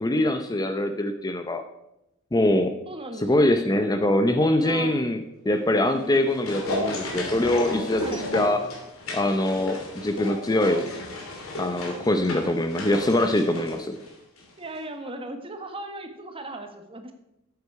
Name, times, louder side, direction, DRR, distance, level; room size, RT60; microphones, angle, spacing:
voice 1, 0.0-1.6 2.3-2.7 3.2-8.6 9.1-10.9 11.6-14.0, left 1 dB, 20° left, 7 dB, 0.6 m, -23 dB
voice 2, 2.9-3.5 4.6-5.0 7.9-8.3 9.7-9.8 14.6-17.1, right 2 dB, 25° right, 5 dB, 1.4 m, -38 dB
sound 1, 5.9-14.5 14.7-14.8, left 2 dB, 85° left, 3.0 m, -34 dB
13.0 x 8.2 x 4.8 m, 0.85 s
head